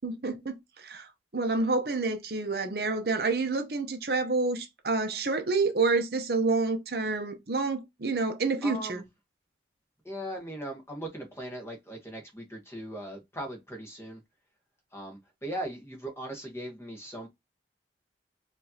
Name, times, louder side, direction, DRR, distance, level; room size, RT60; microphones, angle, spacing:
voice 1, 0.0-9.0, right 3 dB, 55° right, 0.8 m, -28 dB
voice 2, 8.6-9.0 10.0-14.2 14.9-17.3, right 1 dB, 15° left, 1.2 m, -39 dB
4.8 x 2.7 x 2.8 m
head